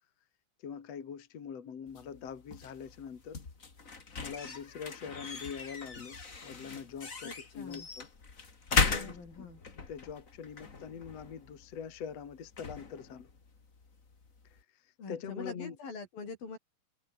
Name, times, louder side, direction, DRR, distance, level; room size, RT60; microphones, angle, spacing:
voice 1, 0.6-3.4 4.2-8.1 8.8-9.6 9.9-13.3 14.4-15.8, left 7 dB, 50° left, 3.3 m, -44 dB
sound 1, 1.9-14.6, left 4 dB, 25° left, 2.3 m, -38 dB
voice 2, 7.2-7.9 8.8-9.6 15.0-16.6, left 4 dB, 80° left, 9.0 m, -44 dB
omnidirectional pair, 4.0 m